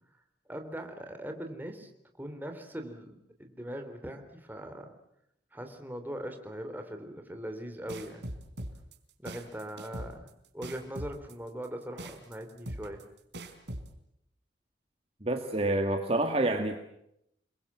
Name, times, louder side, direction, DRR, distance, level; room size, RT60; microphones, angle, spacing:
voice 1, 0.5-1.9 2.2-4.9 5.5-8.3 9.2-13.0, equal, 10° right, 5 dB, 3.4 m, -41 dB
sound 1, 7.9-13.9, right 1 dB, 65° right, 4.4 m, -41 dB
voice 2, 15.2-16.8, right 2 dB, 30° right, 4 dB, 2.0 m, -28 dB
29.5 x 22.5 x 7.4 m, 0.78 s
head